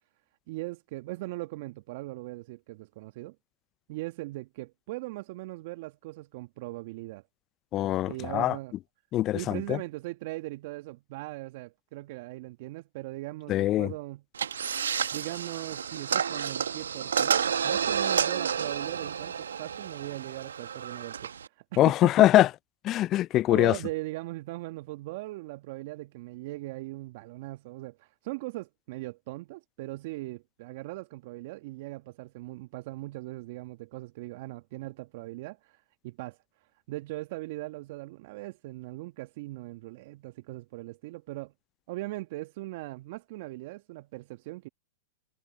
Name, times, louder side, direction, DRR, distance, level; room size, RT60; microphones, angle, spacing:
voice 1, 0.5-3.4 3.9-7.2 8.1-8.7 9.3-14.2 15.1-22.1 23.5-41.5 41.9-44.7, right 20 dB, 55° right, 1.3 m, -39 dB
voice 2, 7.7-8.6 9.1-9.8 13.5-13.9 21.8-22.5 22.8-23.8, left 14 dB, 35° left, 0.4 m, -23 dB
sound 1, 14.4-21.5, right 7 dB, 80° right, 1.2 m, -30 dB
hypercardioid pair, 110°, 0 cm